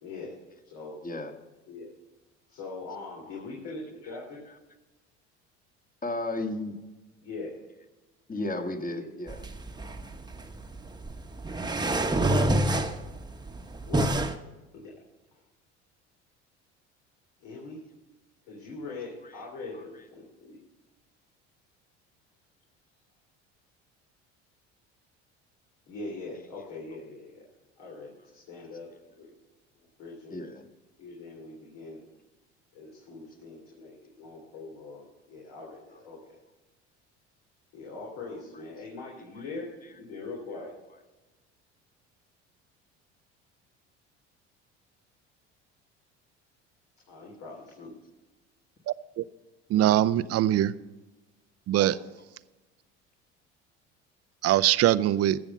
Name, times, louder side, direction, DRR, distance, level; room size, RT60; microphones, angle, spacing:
voice 1, 0.0-0.3 0.7-1.0 1.7-1.9 2.5-4.4 7.2-7.5 8.8-9.1 13.9-14.1 14.7-14.9 17.4-17.8 18.5-20.6 25.9-27.5 27.8-28.9 29.1-29.3 30.0-30.4 31.0-32.0 32.7-36.4 37.7-39.7 39.9-40.7 47.1-47.9 51.7-52.1, left 3 dB, 65° left, 3.2 m, -42 dB
voice 2, 1.0-1.4 3.3-3.5 6.0-6.8 8.3-9.4 19.7-19.9 30.3-30.6 39.3-39.5, left 2 dB, 25° left, 1.8 m, -34 dB
sound 1, 9.3-14.3, right 1 dB, 10° right, 1.1 m, -28 dB
voice 3, 49.7-50.7 51.7-51.9 54.4-55.4, right 13 dB, 45° right, 0.6 m, -22 dB
15.5 x 7.1 x 5.4 m
hypercardioid pair, 70°, 35 cm